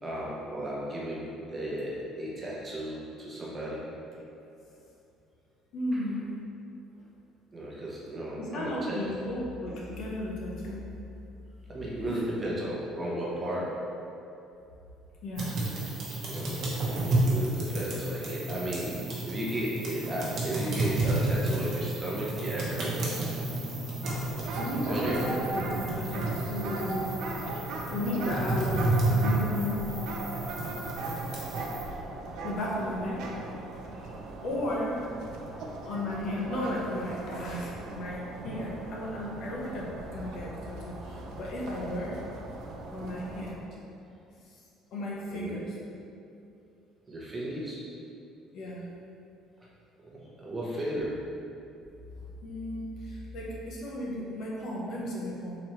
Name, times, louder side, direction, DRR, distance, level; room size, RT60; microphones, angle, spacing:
voice 1, 0.0-3.8 5.9-6.0 7.5-9.0 11.7-13.8 16.2-23.2 24.9-25.2 33.9-34.1 45.3-45.6 47.1-47.8 50.0-51.2, right 1 dB, 20° right, -6 dB, 0.7 m, -35 dB
voice 2, 5.7-6.2 8.4-10.8 12.1-12.2 15.2-15.6 24.5-27.1 27.9-29.8 31.3-31.6 32.4-33.3 34.4-35.0 35.8-42.2 42.9-43.6 44.9-45.7 48.5-48.9 52.4-55.6, left 1 dB, 60° left, -4 dB, 0.7 m, -34 dB
sound 1, 15.4-31.8, right 2 dB, 50° right, 0.9 m, -31 dB
sound 2, 24.0-43.5, right 3 dB, 65° right, 0.4 m, -39 dB
3.9 x 3.0 x 3.1 m, 2.7 s
cardioid pair, 145°, 0 cm